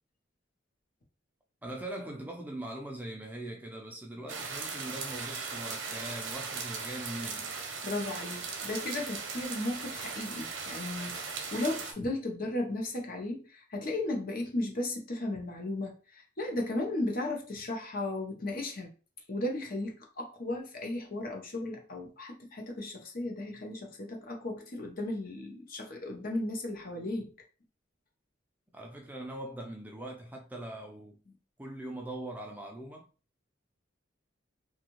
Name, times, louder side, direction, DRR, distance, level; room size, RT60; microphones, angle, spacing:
voice 1, 1.6-7.5 28.7-31.2 31.6-33.1, right 1 dB, 10° right, 0.4 m, -41 dB
sound 1, 4.3-11.9, right 5 dB, 85° right, 0.7 m, -38 dB
voice 2, 7.8-18.9 19.3-27.3, left 2 dB, 50° left, 0.8 m, -35 dB
2.7 x 2.4 x 3.0 m
head